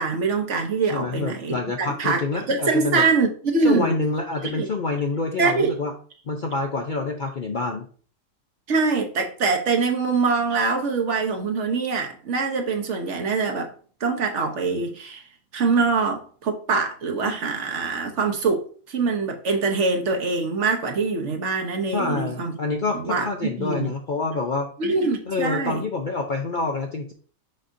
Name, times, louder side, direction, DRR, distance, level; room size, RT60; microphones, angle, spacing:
voice 1, 0.0-2.2 2.5-3.9 4.4-4.7 5.4-5.8 8.7-13.7 14.0-15.2 15.5-22.6 22.9-23.9 24.8-25.8, right 4 dB, 55° right, 1.2 m, -24 dB
voice 2, 0.9-3.0 3.6-5.9 6.3-7.9 21.9-24.7 25.3-27.1, left 3 dB, 50° left, 0.6 m, -27 dB
6.4 x 5.7 x 2.6 m
omnidirectional pair, 1.5 m